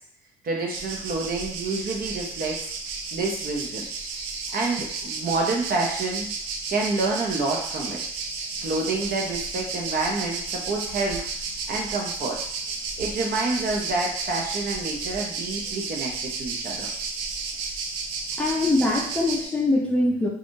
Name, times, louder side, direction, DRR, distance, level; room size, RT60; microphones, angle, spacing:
voice 1, 0.4-2.7 3.1-3.9 4.5-6.3 6.7-8.0 8.6-11.3 11.7-12.4 13.0-16.9, right 3 dB, 45° right, -1 dB, 0.9 m, -28 dB
sound 1, 0.7-19.4, right 4 dB, 70° right, 0.5 m, -32 dB
voice 2, 18.4-20.3, left 2 dB, 5° left, -3 dB, 0.6 m, -23 dB
3.4 x 2.5 x 2.6 m, 0.64 s
hypercardioid pair, 70°, 21 cm